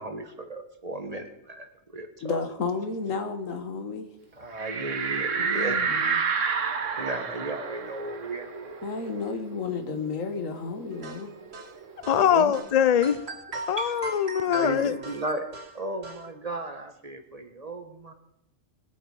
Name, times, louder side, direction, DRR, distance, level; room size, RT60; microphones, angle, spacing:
voice 1, 0.0-2.1 4.4-5.8 7.0-8.7 12.3-12.5 13.7-13.9 14.5-18.1, right 2 dB, 30° right, 1.4 m, -35 dB
voice 2, 2.2-4.1 5.4-6.2 8.8-11.3, left 4 dB, 90° left, 1.8 m, -32 dB
sound 1, 4.6-9.8 10.1-10.2 10.5-12.2, right 6 dB, 75° right, 1.4 m, -30 dB
sound 2, 11.0-12.2 12.5-12.7 13.0-16.2, right 3 dB, 55° right, 1.4 m, -39 dB
voice 3, 12.1-13.2 13.7-14.9, left 9 dB, 70° left, 0.3 m, -22 dB
21.0 x 8.1 x 4.9 m
omnidirectional pair, 1.3 m